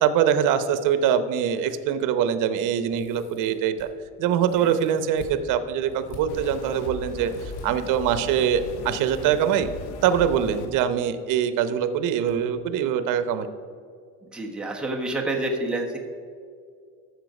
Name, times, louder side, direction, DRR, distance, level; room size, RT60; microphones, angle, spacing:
voice 1, 0.0-3.9 4.2-9.7 10.0-13.5, right 8 dB, 75° right, 11 dB, 0.9 m, -23 dB
sound 1, 2.9-3.9 4.4-5.3 5.9-6.2 7.3-7.6 8.5-9.2 10.3-10.7 11.0-11.1 12.3-12.4 12.8-12.9, left 2 dB, 50° left, 2.8 m, -47 dB
sound 2, 6.3-10.7, left 3 dB, 70° left, 1.3 m, -38 dB
voice 2, 14.3-16.0, right 2 dB, 5° right, -1 dB, 1.0 m, -28 dB
13.0 x 6.5 x 5.3 m, 2.2 s
cardioid pair, 155°, 32 cm